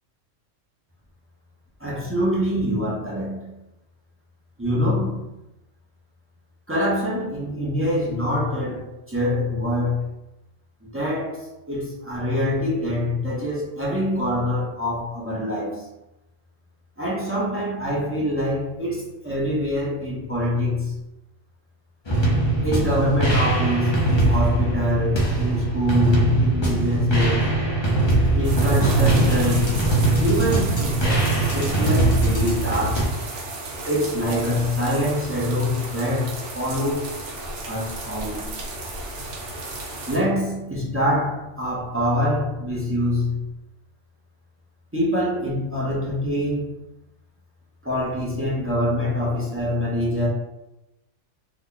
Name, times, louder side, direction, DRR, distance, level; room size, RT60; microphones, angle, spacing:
voice 1, 1.8-3.6 4.6-5.3 6.7-10.2 10.8-15.9 17.0-21.0 22.6-27.6 28.3-29.9 30.2-33.1 33.8-37.1 37.7-38.5 40.1-43.5 44.9-46.7 47.8-50.3, left 1 dB, 20° right, -6 dB, 0.3 m, -25 dB
sound 1, 22.1-33.1, right 2 dB, 30° left, 0.6 m, -21 dB
sound 2, 28.4-40.2, right 2 dB, 70° right, 1.0 m, -34 dB
2.8 x 2.2 x 3.7 m, 0.94 s
omnidirectional pair, 1.3 m